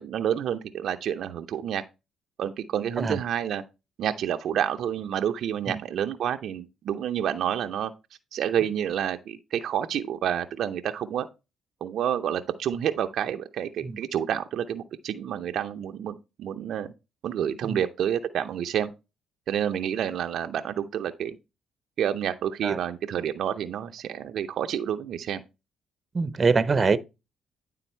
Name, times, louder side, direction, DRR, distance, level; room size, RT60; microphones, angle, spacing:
voice 1, 0.0-1.8 2.4-3.6 4.0-7.9 8.3-11.3 11.8-16.9 17.2-18.9 19.5-21.4 22.0-25.4, right 9 dB, 70° right, 0.6 m, -29 dB
voice 2, 26.1-27.0, right 4 dB, 35° right, 0.8 m, -24 dB
10.0 x 3.8 x 4.4 m
supercardioid pair, 70°, 0 cm